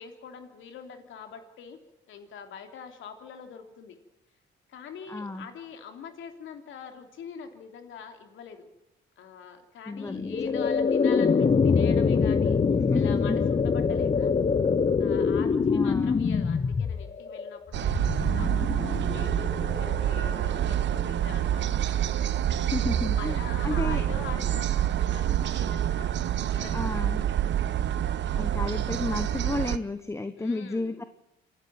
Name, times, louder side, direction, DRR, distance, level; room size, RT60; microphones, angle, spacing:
voice 1, 0.0-1.8 2.1-4.0 4.7-8.7 9.2-12.6 12.9-14.3 15.0-19.3 19.7-21.6 23.2-27.3 30.4-31.0, left 7 dB, 80° left, 6 dB, 3.3 m, -44 dB
voice 2, 5.1-5.5 9.9-10.4 12.9-13.4 15.7-16.2 22.6-24.0 26.7-27.2 28.3-31.0, left 2 dB, 15° left, 10 dB, 1.2 m, -32 dB
sound 1, 10.0-21.1, left 5 dB, 35° left, 1.0 m, -25 dB
sound 2, 17.7-29.8, right 10 dB, 65° right, 1.1 m, -27 dB
27.5 x 11.5 x 8.9 m, 0.93 s
cardioid pair, 90°, 20 cm